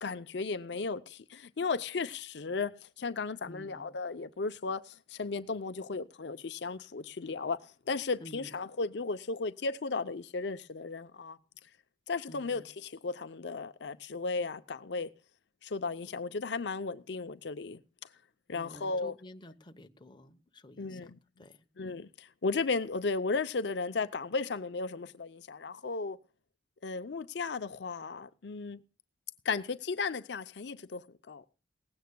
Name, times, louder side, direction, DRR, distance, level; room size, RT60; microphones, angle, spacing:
voice 1, 0.0-11.4 12.1-15.1 15.6-17.8 18.5-19.1 20.8-21.2 21.8-26.2 26.8-28.8 29.4-31.4, left 4 dB, 65° left, 0.6 m, -35 dB
voice 2, 3.5-3.9 8.2-8.6 12.3-12.7 18.5-21.6, equal, 25° left, 0.9 m, -51 dB
19.0 x 16.0 x 2.2 m
head